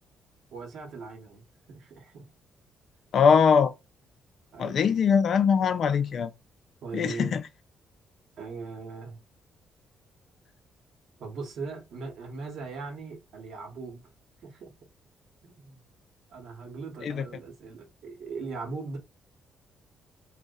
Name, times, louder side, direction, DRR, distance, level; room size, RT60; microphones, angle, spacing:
voice 1, 0.5-1.4 1.7-2.3 4.5-4.8 6.8-7.4 8.4-9.2 11.2-14.0 14.4-14.7 15.4-15.9 16.3-19.0, right 4 dB, 70° right, 0.8 m, -39 dB
voice 2, 3.1-3.7 4.6-6.3 6.9-7.5 17.0-17.2, left 6 dB, 60° left, 0.3 m, -22 dB
2.6 x 2.1 x 2.2 m
cardioid pair, 90°, 0 cm